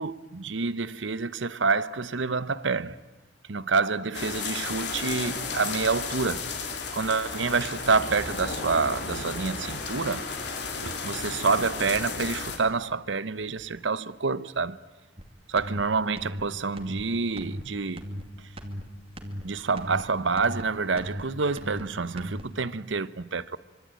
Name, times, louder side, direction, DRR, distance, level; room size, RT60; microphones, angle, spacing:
voice 1, 0.0-3.0 3.5-6.4 6.9-10.3 10.8-14.8 15.5-18.1 19.4-23.6, right 4 dB, 80° right, 0.9 m, -28 dB
sound 1, 4.1-12.6, left 4 dB, 65° left, 3.7 m, -33 dB
sound 2, 15.2-15.3 15.6-15.8 16.2-16.4 16.8-17.0 17.4-17.6 18.0-18.3 18.6-18.8 19.2-19.4 19.8-20.0 20.4-20.6 21.0-21.2 21.6-21.8 22.2-22.4, equal, 30° right, 2.5 m, -36 dB
25.0 x 25.0 x 9.2 m
head